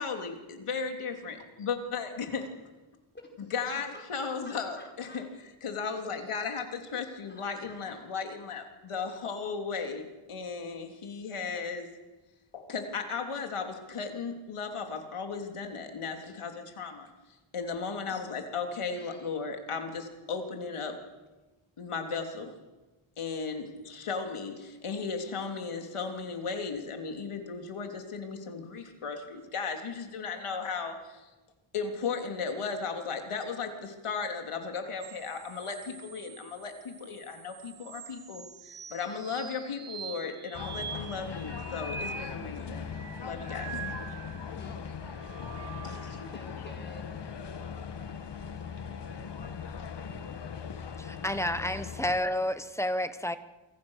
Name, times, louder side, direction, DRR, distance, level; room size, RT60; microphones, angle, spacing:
voice 1, 0.0-2.5 3.5-5.3 5.6-11.9 12.5-17.1 17.5-21.0 21.8-22.5 23.2-31.3 31.7-42.9 43.2-44.2 45.8-46.3, left 5 dB, 90° left, 4 dB, 3.5 m, -36 dB
voice 2, 3.9-5.2 7.3-7.8 18.9-19.3 44.5-45.0 46.1-47.2, left 2 dB, 20° left, 2 dB, 5.2 m, -51 dB
sound 1, 35.0-44.6 45.0-46.4 48.2-49.4, right 5 dB, 75° right, 4.0 m, -45 dB
sound 2, 40.5-52.2, left 6 dB, 55° left, 1.7 m, -40 dB
voice 3, 51.0-53.4, left 1 dB, 5° left, 11 dB, 1.2 m, -30 dB
27.5 x 25.0 x 6.6 m, 1.2 s
wide cardioid pair, 160°, 49 cm